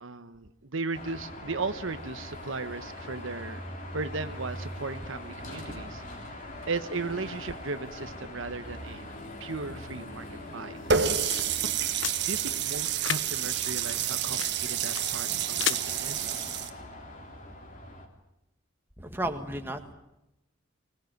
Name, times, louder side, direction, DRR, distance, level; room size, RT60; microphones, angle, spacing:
voice 1, 0.0-3.6 3.9-9.1 9.4-10.8 11.9-16.3, right 3 dB, 70° right, 10 dB, 1.2 m, -36 dB
Car passing by / Traffic noise roadway noise / Engine, 0.9-18.1, left 1 dB, 40° left, 3.6 m, -42 dB
sound 1, 10.8-15.8, left 9 dB, 60° left, 1.1 m, -37 dB
Water tap faucet, 10.9-16.7, right 8 dB, 55° right, 1.6 m, -29 dB
voice 2, 19.0-19.9, right 1 dB, 10° right, 5 dB, 1.8 m, -33 dB
25.0 x 19.5 x 9.4 m, 0.90 s
head